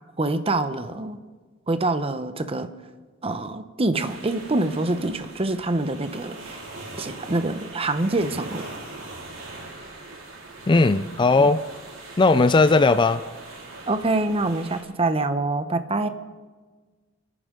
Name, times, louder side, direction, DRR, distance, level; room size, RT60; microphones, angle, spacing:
voice 1, 0.2-1.2 1.7-2.7 3.2-6.6 7.0-8.6 11.4-11.5 13.9-16.1, right 2 dB, 30° right, 10 dB, 0.8 m, -25 dB
sound 1, 4.0-14.8, right 2 dB, 75° right, 3.9 m, -41 dB
voice 2, 10.7-11.6 12.2-13.2, left 3 dB, 25° left, 12 dB, 0.4 m, -17 dB
29.0 x 9.9 x 3.8 m, 1.4 s
head